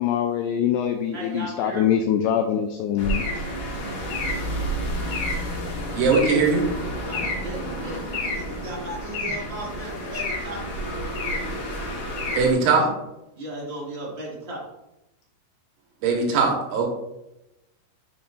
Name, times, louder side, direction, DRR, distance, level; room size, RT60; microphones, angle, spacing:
voice 1, 0.0-3.2, left 9 dB, 90° left, 6 dB, 2.3 m, -24 dB
voice 2, 1.1-2.1 7.0-10.6 13.3-14.6, right 1 dB, 35° right, -5 dB, 0.9 m, -35 dB
sound 1, 3.0-12.5, equal, 60° left, 2.4 m, -29 dB
voice 3, 5.9-6.7 12.4-12.9 16.0-16.9, right 4 dB, 80° right, 0 dB, 3.7 m, -20 dB
8.6 x 7.2 x 2.6 m, 0.92 s
omnidirectional pair, 5.3 m